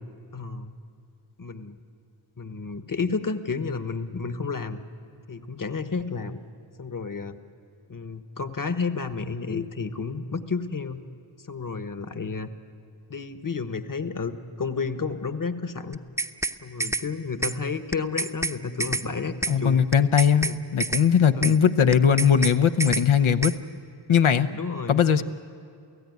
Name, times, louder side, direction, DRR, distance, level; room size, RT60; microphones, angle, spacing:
voice 1, 0.3-0.7 1.4-1.8 2.4-4.8 5.3-6.4 6.8-7.4 7.9-11.0 11.5-12.5 13.1-16.0 16.6-19.8 20.3-20.6 21.3-21.6 24.5-25.0, left 4 dB, 40° left, 9 dB, 1.4 m, -31 dB
sound 1, 15.9-16.5 16.8-17.0 17.4-17.5 17.9-18.5 18.8-19.0 19.4-19.5 19.9-20.5 20.8-21.0 21.4-21.5 21.9-22.5 22.8-23.0 23.4-23.5, right 2 dB, 5° right, 0.8 m, -27 dB
voice 2, 19.5-23.5 24.1-24.5 24.9-25.2, left 7 dB, 75° left, 7 dB, 1.0 m, -20 dB
29.5 x 16.0 x 9.5 m, 2.4 s
wide cardioid pair, 55°, 48 cm